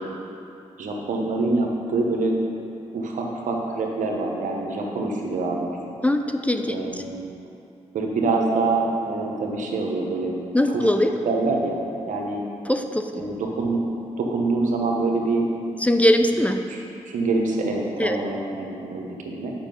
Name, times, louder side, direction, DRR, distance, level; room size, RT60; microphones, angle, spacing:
voice 1, 0.8-2.3 2.9-5.8 6.7-7.2 7.9-10.3 10.7-10.9 11.2-11.8 12.1-12.4 13.1-13.8 14.2-15.4 16.3-16.4 16.7-19.5, right 3 dB, 75° right, 1 dB, 1.1 m, -25 dB
voice 2, 6.0-6.8 10.5-11.1 12.7-13.1 15.8-16.6 18.0-18.2, left 1 dB, 10° left, 6 dB, 0.6 m, -20 dB
7.3 x 5.4 x 5.4 m, 2.6 s
supercardioid pair, 45°, 13 cm